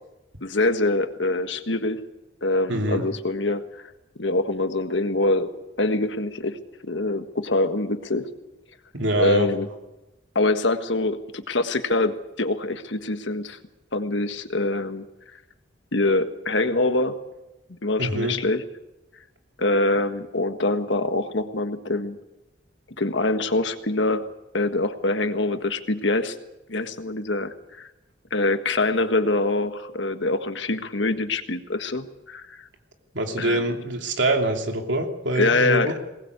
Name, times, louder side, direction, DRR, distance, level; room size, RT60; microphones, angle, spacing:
voice 1, 0.4-2.0 2.4-3.6 4.2-5.5 5.8-8.2 9.1-9.7 10.3-13.6 13.9-15.1 15.9-17.2 17.8-18.6 19.6-22.2 23.0-24.3 24.5-26.3 26.7-27.9 28.3-32.7 33.4-33.7 35.3-35.9, left 2 dB, 70° left, 8 dB, 1.6 m, -24 dB
voice 2, 2.7-3.0 8.9-9.5 18.0-18.3 33.1-35.9, right 1 dB, 70° right, 3 dB, 3.0 m, -24 dB
22.0 x 19.0 x 8.2 m, 1.0 s
head